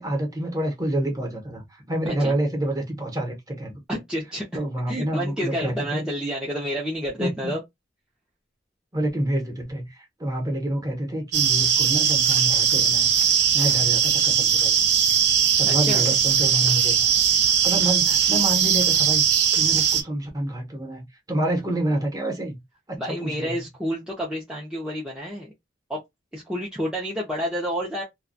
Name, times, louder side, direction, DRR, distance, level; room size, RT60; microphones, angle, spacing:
voice 1, 0.0-3.8 4.5-6.0 7.2-7.5 8.9-14.8 15.5-17.0 17.4-22.6 22.9-23.6, right 1 dB, 20° right, 0.9 m, -28 dB
voice 2, 3.9-7.6 15.7-16.0 23.0-25.5 25.9-26.0 26.3-28.0, equal, 5° right, 0.5 m, -29 dB
sound 1, 11.3-20.0, right 8 dB, 75° right, 0.6 m, -20 dB
2.2 x 2.2 x 2.5 m
head